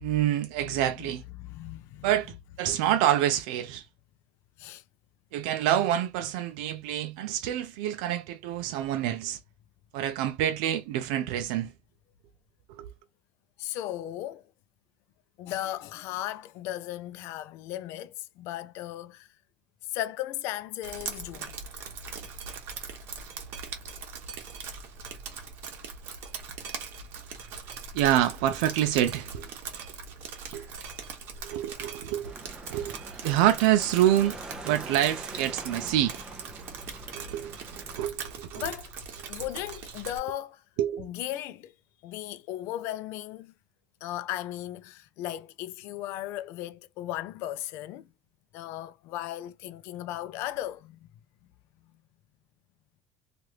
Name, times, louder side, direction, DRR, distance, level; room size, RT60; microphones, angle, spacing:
voice 1, 0.0-1.2 2.0-3.9 5.3-9.4 9.9-11.7 12.8-12.9 27.9-29.5 30.5-30.7 31.4-32.3 32.7-33.0 33.2-34.4 34.6-36.2 37.1-38.7 40.8-41.1, right 12 dB, 90° right, 0.4 m, -27 dB
voice 2, 1.4-2.1 4.6-4.8 13.6-14.4 15.4-19.3 19.9-21.5 38.5-38.9 39.3-40.6 41.0-41.7 42.0-43.5 44.0-48.1 48.5-51.1, left 13 dB, 65° left, 0.5 m, -36 dB
Drip, 20.8-40.2, right 5 dB, 55° right, 1.0 m, -41 dB
sound 1, 32.2-37.9, right 2 dB, 15° right, 0.7 m, -44 dB
3.1 x 2.5 x 2.8 m
cardioid pair, 140°, 5 cm